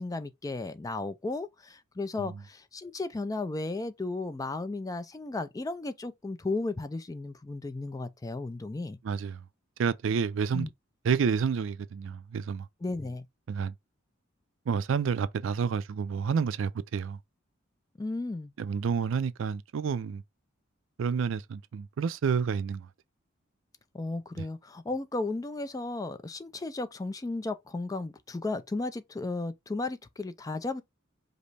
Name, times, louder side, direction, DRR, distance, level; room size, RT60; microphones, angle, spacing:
voice 1, 0.0-9.0 10.5-10.7 12.8-13.3 18.0-18.5 23.9-30.8, left 2 dB, 20° left, 0.3 m, -34 dB
voice 2, 9.0-9.4 9.8-10.7 11.0-12.7 13.5-13.7 14.7-17.2 18.6-20.2 21.0-22.9, right 6 dB, 65° right, 0.4 m, -29 dB
5.1 x 2.0 x 4.0 m
head